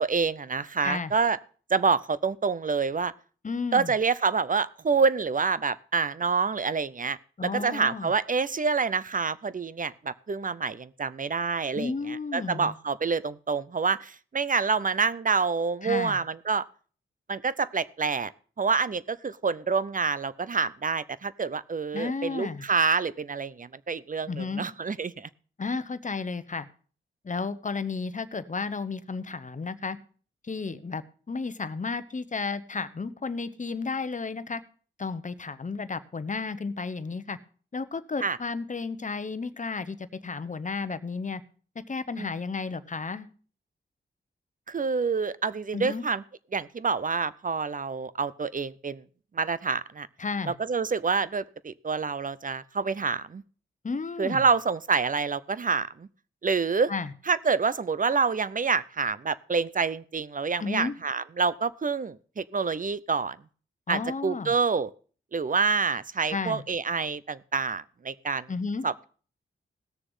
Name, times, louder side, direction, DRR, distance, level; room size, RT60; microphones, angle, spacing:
voice 1, 0.0-1.4 1.7-3.1 3.7-16.6 17.3-18.3 18.6-25.3 38.2-38.4 42.2-42.3 44.7-46.2 46.5-49.0 49.3-50.1 50.5-53.4 54.2-56.1 56.4-56.9 57.3-63.4 63.9-64.9 65.3-68.5 68.8-69.0, right 5 dB, 40° right, 17 dB, 0.6 m, -27 dB
voice 2, 0.8-1.1 3.4-3.9 7.4-8.1 11.7-12.7 15.8-16.2 21.9-22.7 24.3-24.7 25.6-26.7 27.2-30.0 30.4-34.6 35.0-37.4 37.7-41.4 41.7-43.3 45.7-46.1 50.2-50.5 53.8-54.5 56.9-57.1 60.6-60.9 63.9-64.5 66.3-66.6 68.5-68.9, left 4 dB, 40° left, 14 dB, 1.0 m, -33 dB
17.0 x 6.8 x 5.5 m, 0.41 s
cardioid pair, 65°, 21 cm